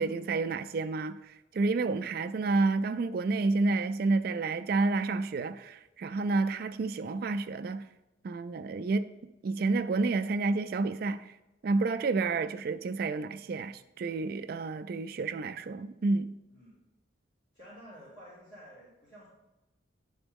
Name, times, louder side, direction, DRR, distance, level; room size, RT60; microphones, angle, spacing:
voice 1, 0.0-7.8 8.2-9.1 9.4-11.2 11.6-16.3, right 3 dB, 50° right, 0.3 m, -30 dB
voice 2, 16.5-16.8 17.5-19.3, equal, 50° left, 2.4 m, -51 dB
9.9 x 3.9 x 3.6 m
head